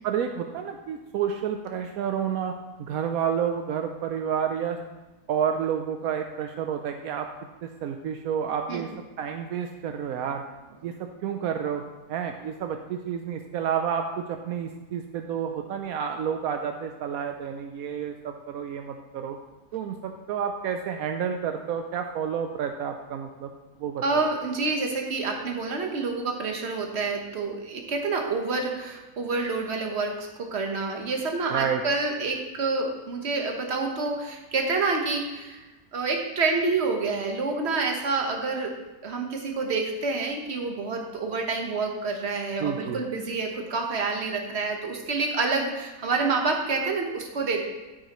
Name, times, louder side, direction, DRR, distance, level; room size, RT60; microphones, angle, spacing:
voice 1, 0.0-2.5 2.8-4.8 5.3-7.3 7.6-8.9 9.2-10.4 10.8-11.8 12.1-19.4 19.7-23.5 23.8-24.2 31.5-31.8 42.6-43.0, right 8 dB, 80° right, 5 dB, 1.0 m, -30 dB
voice 2, 24.0-35.6 35.9-38.8 39.0-47.6, right 3 dB, 50° right, 2 dB, 1.4 m, -28 dB
10.0 x 8.8 x 3.0 m, 1.1 s
omnidirectional pair, 1.5 m